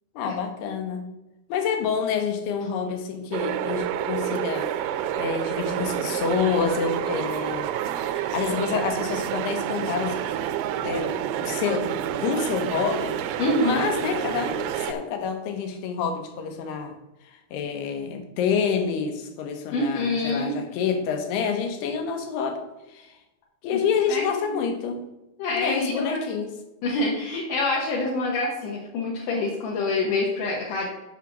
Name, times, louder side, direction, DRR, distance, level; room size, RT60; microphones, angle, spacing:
voice 1, 0.2-1.0 1.5-4.9 5.2-7.7 8.1-10.2 10.8-16.9 17.5-22.6 22.9-23.1 23.6-25.0 25.5-26.5, left 6 dB, 85° left, 6 dB, 3.1 m, -28 dB
sound 1, 3.3-14.9, right 10 dB, 80° right, 2.5 m, -29 dB
voice 2, 13.4-13.9 19.7-20.6 23.7-23.8 24.1-24.6 25.4-26.2 26.8-30.9, left 2 dB, 65° left, -3 dB, 2.4 m, -26 dB
7.3 x 5.9 x 6.3 m, 0.99 s
omnidirectional pair, 4.6 m